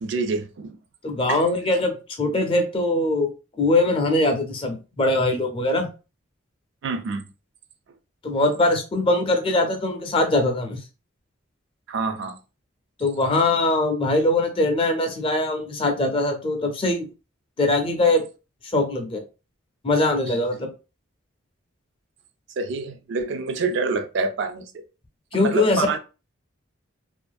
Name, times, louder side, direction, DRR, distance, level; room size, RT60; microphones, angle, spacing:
voice 1, 0.0-0.8 1.3-1.4 6.8-7.2 11.9-12.4 22.6-24.8 25.4-26.0, right 4 dB, 60° right, 0.3 m, -27 dB
voice 2, 1.0-3.3 3.6-5.9 8.2-10.8 13.0-17.1 17.6-18.2 18.7-19.2 19.8-20.7 25.3-26.0, left 2 dB, 25° left, 0.5 m, -22 dB
2.5 x 2.4 x 2.2 m
head